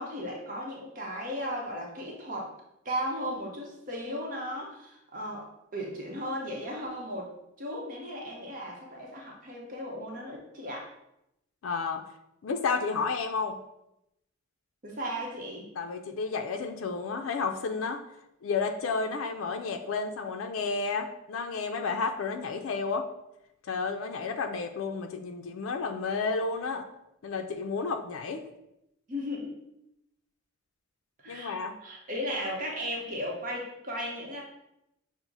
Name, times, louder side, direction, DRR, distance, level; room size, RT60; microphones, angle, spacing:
voice 1, 0.0-2.5 2.8-7.3 7.6-10.9 14.8-15.7 29.1-29.6 31.2-31.6 31.8-34.4, equal, 40° right, -1 dB, 0.8 m, -36 dB
voice 2, 11.6-12.0 12.4-13.6 15.8-18.0 18.4-23.1 23.6-26.9 27.2-28.4 31.3-31.8, left 4 dB, 75° left, 5 dB, 0.4 m, -31 dB
5.9 x 2.0 x 3.9 m, 0.84 s
head